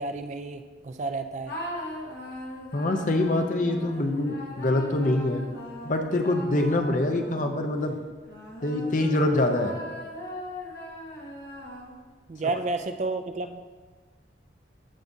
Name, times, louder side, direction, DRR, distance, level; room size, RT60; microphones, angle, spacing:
voice 1, 0.0-1.5 12.3-13.6, right 3 dB, 40° right, 8 dB, 0.3 m, -31 dB
sound 1, 1.4-7.7 8.3-12.2, left 1 dB, 60° left, 1.4 m, -40 dB
voice 2, 2.7-5.5 5.8-8.0 8.6-9.7, left 1 dB, 45° left, 5 dB, 0.6 m, -25 dB
14.0 x 4.8 x 2.7 m, 1.4 s
head